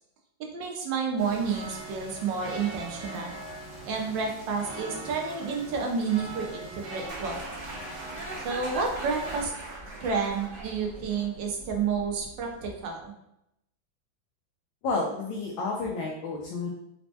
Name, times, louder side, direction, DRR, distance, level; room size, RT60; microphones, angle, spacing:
voice 1, 0.5-3.4 3.8-7.4 8.4-9.5 10.0-13.1, right 5 dB, 75° right, 1 dB, 1.3 m, -30 dB
sound 1, 1.2-9.4, right 2 dB, 60° right, 1.5 m, -41 dB
sound 2, 7.1-12.9, right 1 dB, 35° right, 0.9 m, -41 dB
voice 2, 14.8-16.7, left 3 dB, 75° left, -3 dB, 1.3 m, -30 dB
4.2 x 2.1 x 2.7 m, 0.82 s
omnidirectional pair, 2.2 m